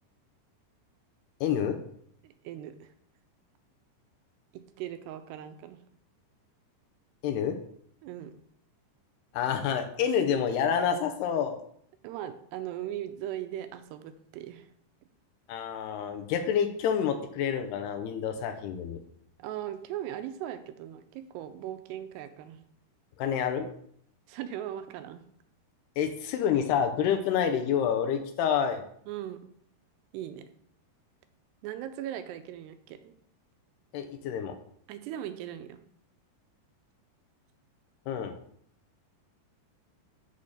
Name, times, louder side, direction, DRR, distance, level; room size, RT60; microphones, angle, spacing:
voice 1, 1.4-1.8 7.2-7.6 9.3-11.6 15.5-19.0 23.2-23.7 26.0-28.8 33.9-34.6 38.1-38.3, left 8 dB, 80° left, 5 dB, 2.7 m, -28 dB
voice 2, 2.2-2.9 4.8-5.8 8.0-8.4 12.0-14.7 19.4-22.7 24.3-25.2 29.1-29.5 30.1-30.4 31.6-33.1 34.9-35.8, right 11 dB, 85° right, 9 dB, 2.7 m, -39 dB
7.2 x 4.2 x 6.5 m, 0.65 s
omnidirectional pair, 4.9 m